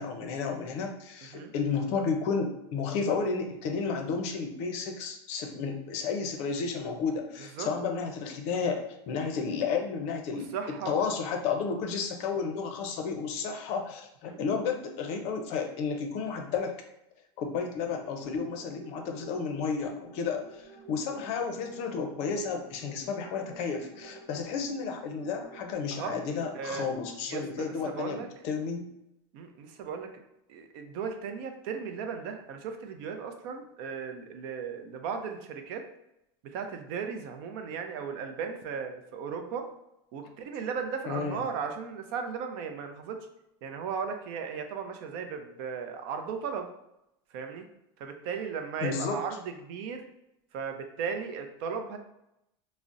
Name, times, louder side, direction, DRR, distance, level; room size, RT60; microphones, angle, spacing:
voice 1, 0.0-10.5 10.9-16.7 17.4-28.9 41.0-41.4 48.8-49.2, left 5 dB, 50° left, 4 dB, 0.5 m, -32 dB
voice 2, 10.3-10.9 14.3-14.4 25.9-26.1 26.5-26.9 27.3-28.3 29.3-30.1 30.5-35.8 36.4-39.7 40.1-43.2 43.6-46.7 47.3-47.7 48.0-50.1 50.5-52.0, right 6 dB, 60° right, 5 dB, 0.5 m, -36 dB
sound 1, 17.6-26.9, right 3 dB, 5° right, 1.1 m, -51 dB
3.8 x 2.0 x 2.4 m, 0.84 s
supercardioid pair, 145°, 14 cm